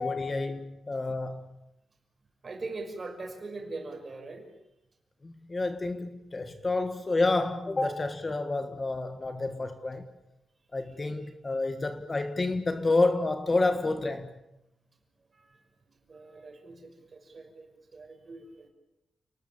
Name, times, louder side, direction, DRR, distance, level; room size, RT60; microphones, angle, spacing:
voice 1, 0.0-1.4 5.2-10.1 10.7-14.3, left 2 dB, 25° left, 1.5 m, -29 dB
voice 2, 2.4-4.5 15.2-18.7, right 3 dB, 30° right, 5.9 m, -42 dB
30.0 x 20.0 x 8.8 m
wide cardioid pair, 165°, 0 cm